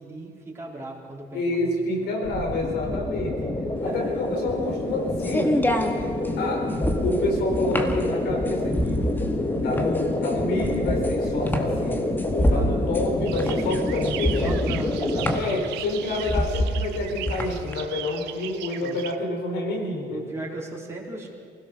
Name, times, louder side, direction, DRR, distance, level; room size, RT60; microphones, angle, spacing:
voice 1, 0.0-2.1 2.9-3.0 3.8-4.2 12.5-12.7 14.4-15.6 18.8-19.0 20.1-21.3, right 2 dB, 15° right, -3 dB, 4.3 m, -37 dB
voice 2, 1.3-3.5 3.8-5.6 6.4-6.7 7.0-9.1 9.6-14.5 15.3-20.2, left 2 dB, 75° left, 1 dB, 4.7 m, -28 dB
sound 1, 2.2-15.4, left 2 dB, 30° left, 2.3 m, -27 dB
sound 2, 3.9-17.7, equal, 10° left, 1.8 m, -27 dB
sound 3, 13.2-19.2, right 13 dB, 90° right, 1.0 m, -38 dB
23.5 x 17.0 x 6.5 m, 2.2 s
cardioid pair, 110°, 17 cm